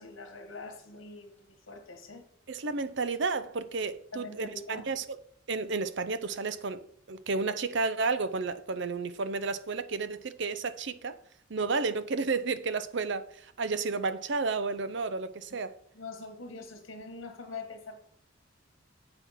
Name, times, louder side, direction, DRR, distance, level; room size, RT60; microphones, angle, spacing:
voice 1, 0.0-2.2 4.1-4.9 15.9-18.0, left 3 dB, 90° left, 1.5 m, -44 dB
voice 2, 2.5-5.0 5.5-11.2 11.5-15.8, right 4 dB, 60° right, 0.7 m, -32 dB
7.9 x 5.7 x 5.7 m
head